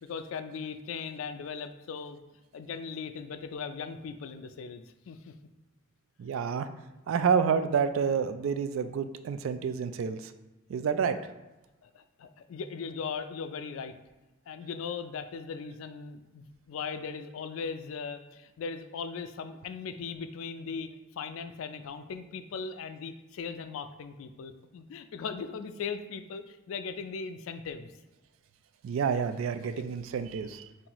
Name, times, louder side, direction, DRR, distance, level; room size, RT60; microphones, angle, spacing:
voice 1, 0.0-2.2 2.5-5.3 11.8-13.9 14.5-27.9, left 5 dB, 80° left, 10 dB, 0.3 m, -38 dB
voice 2, 6.2-6.7 7.1-10.3 10.7-11.2 28.8-30.6, right 6 dB, 75° right, 10 dB, 0.3 m, -28 dB
5.5 x 2.5 x 2.9 m, 1.1 s
head